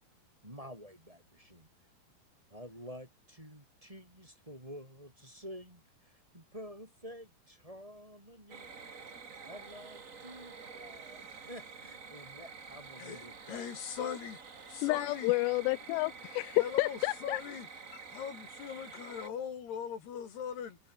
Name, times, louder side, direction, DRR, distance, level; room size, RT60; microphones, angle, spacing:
voice 1, 0.4-1.7 2.5-8.8 9.4-13.6, equal, 5° right, 7.0 m, -50 dB
sound 1, 8.5-19.3, right 5 dB, 65° right, 0.7 m, -49 dB
voice 2, 13.0-14.4 14.7-15.3 16.6-17.7 18.1-20.8, left 8 dB, 70° left, 4.9 m, -40 dB
voice 3, 14.8-17.4, left 23 dB, 85° left, 2.7 m, -30 dB
omnidirectional pair, 5.0 m